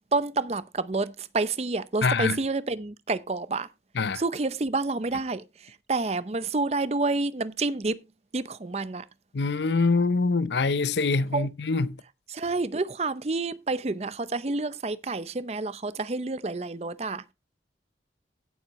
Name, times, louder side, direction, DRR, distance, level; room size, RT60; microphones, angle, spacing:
voice 1, 0.1-3.7 4.1-8.0 8.3-9.0 11.3-11.5 12.3-17.3, right 3 dB, 35° right, 0.5 m, -29 dB
voice 2, 2.0-2.4 4.0-4.2 9.3-12.0, left 4 dB, 75° left, 0.6 m, -24 dB
16.5 x 7.2 x 3.0 m
head